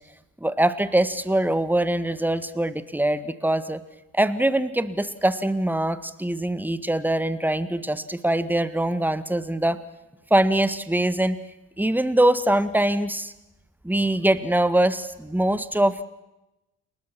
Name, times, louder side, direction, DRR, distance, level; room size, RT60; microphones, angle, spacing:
voice 1, 0.4-3.8 4.1-9.8 10.3-11.4 11.8-13.3 13.8-16.0, right 1 dB, 5° right, 13 dB, 1.7 m, -23 dB
30.0 x 21.0 x 6.2 m, 0.96 s
figure-of-eight pair, 50°, 43 cm